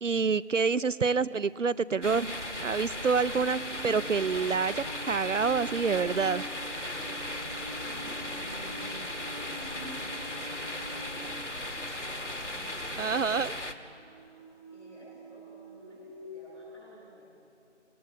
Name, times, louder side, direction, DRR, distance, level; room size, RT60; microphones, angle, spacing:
voice 1, 0.0-2.3 2.6-6.4 13.0-13.5, right 5 dB, 80° right, 19 dB, 0.6 m, -27 dB
sound 1, 1.1-12.2 13.9-16.7, right 2 dB, 20° right, 2.4 m, -47 dB
sound 2, 2.0-13.7, left 1 dB, 70° left, 2.1 m, -37 dB
voice 2, 7.2-9.0 9.2-9.6 10.3-13.9 14.7-17.2, right 1 dB, ahead, -24 dB, 3.6 m, -52 dB
26.0 x 20.0 x 8.8 m, 2.7 s
figure-of-eight pair, 170°, 37 cm